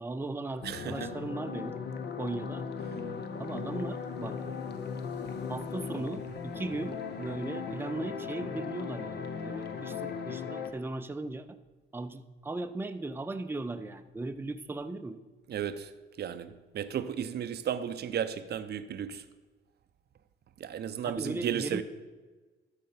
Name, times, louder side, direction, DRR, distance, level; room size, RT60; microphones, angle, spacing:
voice 1, 0.0-1.8 2.2-2.7 3.4-4.4 5.5-11.6 11.9-15.2 21.1-21.8, right 2 dB, 10° right, 0.5 m, -37 dB
sound 1, 0.6-10.7, left 6 dB, 55° left, 0.8 m, -38 dB
voice 2, 0.6-1.1 15.5-19.3 20.6-21.8, right 9 dB, 55° right, 0.6 m, -34 dB
12.5 x 4.3 x 5.6 m
cardioid pair, 90°, 20 cm